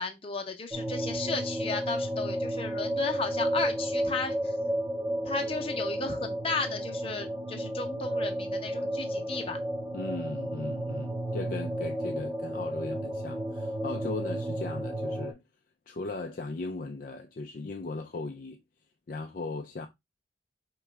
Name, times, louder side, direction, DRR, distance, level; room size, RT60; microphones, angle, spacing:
voice 1, 0.0-4.7 5.2-9.6, left 4 dB, 30° left, 0.8 m, -35 dB
sound 1, 0.7-15.3, right 1 dB, 20° right, 0.8 m, -32 dB
voice 2, 9.9-15.4 15.9-18.6 19.1-19.9, left 3 dB, 50° left, 0.4 m, -38 dB
4.6 x 3.1 x 3.3 m
head